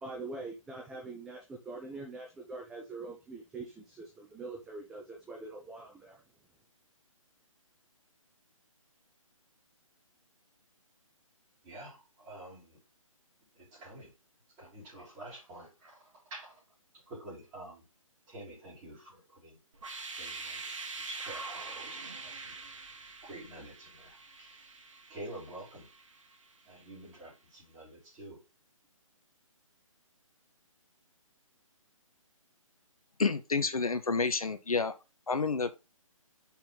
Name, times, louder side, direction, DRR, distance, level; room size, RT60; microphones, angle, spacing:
voice 1, 0.0-6.2, right 3 dB, 5° right, 0.4 m, -44 dB
voice 2, 11.6-12.8 13.5-14.1 14.6-16.6 16.9-17.9 18.3-19.6 20.2-22.5 23.2-24.7 25.1-25.9 26.6-28.4, right 1 dB, 20° right, 3.8 m, -48 dB
sound 1, 19.7-26.6, right 3 dB, 65° right, 1.6 m, -44 dB
voice 3, 33.2-34.9 35.3-35.8, left 4 dB, 90° left, 0.8 m, -29 dB
5.5 x 4.4 x 3.9 m
figure-of-eight pair, 145°, 18 cm